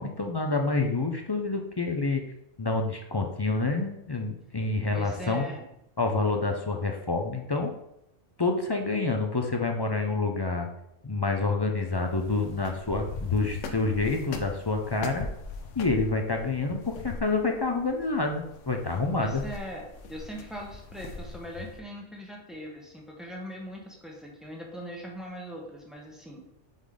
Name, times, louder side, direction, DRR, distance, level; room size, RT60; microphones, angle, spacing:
voice 1, 0.0-2.2 2.6-5.4 6.0-7.7 8.4-10.7 11.0-15.3 15.8-19.4, left 3 dB, 35° left, 3 dB, 0.4 m, -28 dB
voice 2, 4.9-5.7 19.1-26.5, equal, ahead, -2 dB, 1.2 m, -41 dB
sound 1, 11.8-21.8, left 4 dB, 85° left, 1.1 m, -40 dB
5.3 x 4.0 x 4.9 m, 0.81 s
omnidirectional pair, 1.2 m